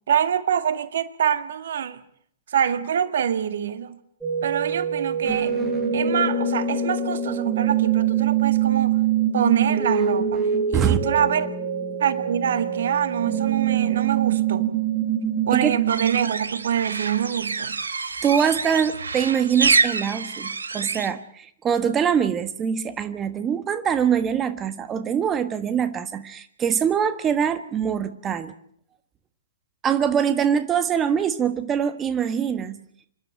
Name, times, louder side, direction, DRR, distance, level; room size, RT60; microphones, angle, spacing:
voice 1, 0.1-2.0 2.5-4.0 4.4-5.5 5.9-9.0 9.3-11.5 12.0-14.7 15.5-17.8, right 8 dB, 65° right, 11 dB, 1.8 m, -25 dB
sound 1, 4.2-16.2, right 7 dB, 5° right, 6.0 m, -24 dB
sound 2, 15.9-21.1, right 4 dB, 85° right, 1.5 m, -26 dB
voice 2, 18.2-28.5 29.8-32.8, right 8 dB, 20° right, 10 dB, 1.5 m, -23 dB
27.5 x 11.5 x 9.1 m, 0.66 s
hypercardioid pair, 115°, 0 cm